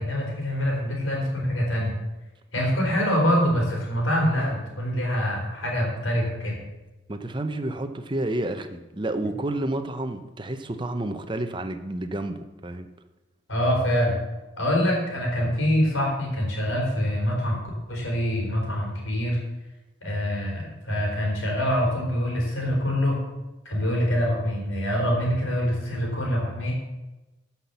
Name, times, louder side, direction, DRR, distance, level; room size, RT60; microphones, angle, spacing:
voice 1, 0.0-1.9 2.5-6.6 13.5-14.2 14.6-17.6 17.9-19.4 20.0-23.2 23.6-26.7, equal, 80° left, -1 dB, 4.3 m, -25 dB
voice 2, 7.1-12.9, right 1 dB, 25° right, 7 dB, 0.8 m, -30 dB
12.5 x 6.0 x 7.1 m, 1.1 s
head